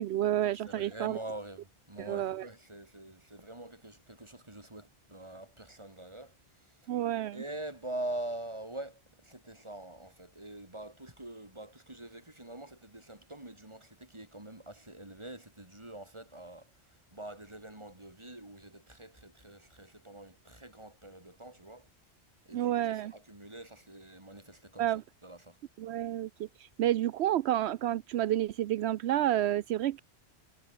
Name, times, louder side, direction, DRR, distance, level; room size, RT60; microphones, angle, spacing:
voice 1, 0.0-1.2 2.1-2.4 6.9-7.4 22.5-23.1 24.8-25.0 25.8-30.0, right 12 dB, 80° right, 0.8 m, -30 dB
voice 2, 0.5-6.9 7.3-21.9 22.5-24.9 25.2-25.6, right 1 dB, 25° right, 3.5 m, -44 dB
omnidirectional pair, 1.1 m